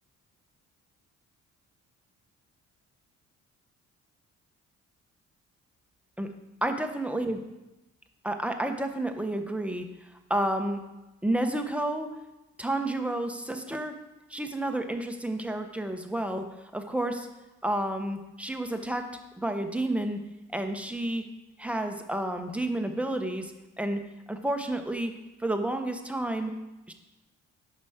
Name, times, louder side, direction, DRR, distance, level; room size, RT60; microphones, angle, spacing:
voice 1, 6.6-7.4 8.2-9.9 10.3-10.8 11.2-12.1 12.6-14.0 14.3-16.4 16.7-17.3 17.6-19.1 19.4-20.2 20.5-21.2 21.6-24.0 24.3-25.1 25.4-26.5 26.9-27.0, right 1 dB, 5° right, 5 dB, 1.0 m, -30 dB
10.5 x 6.0 x 5.0 m, 1.0 s
cardioid pair, 90°, 30 cm